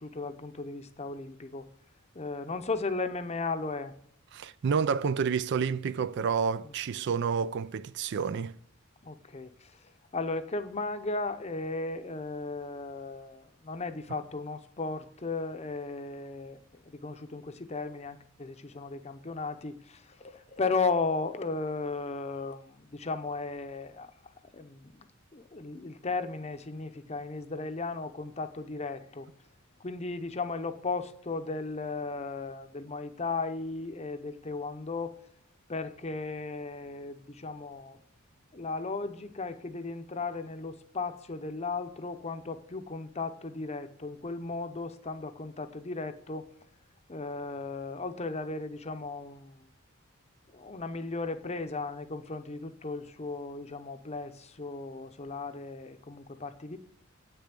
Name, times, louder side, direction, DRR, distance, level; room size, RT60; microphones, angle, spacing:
voice 1, 0.0-1.7 2.1-3.9 7.0-7.1 9.0-29.3 29.8-35.2 35.7-38.0 38.5-46.5 47.1-49.7 50.5-56.8, left 3 dB, 30° left, 0.7 m, -36 dB
voice 2, 4.3-8.5, right 6 dB, 55° right, 0.3 m, -29 dB
8.6 x 6.8 x 8.1 m
head